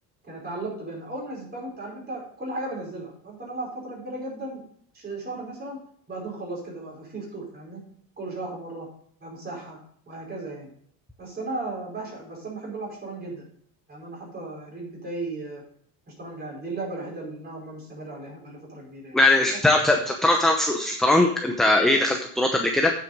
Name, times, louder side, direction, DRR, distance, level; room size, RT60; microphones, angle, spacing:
voice 1, 0.3-4.6 4.9-5.8 6.1-7.8 8.2-8.9 9.2-9.8 10.1-10.7 11.2-13.5 13.9-15.6 16.2-19.2, right 2 dB, 25° right, -3 dB, 5.2 m, -35 dB
voice 2, 19.1-22.9, left 2 dB, ahead, 2 dB, 0.8 m, -20 dB
9.0 x 7.7 x 5.1 m, 0.63 s
cardioid pair, 150°, 40 cm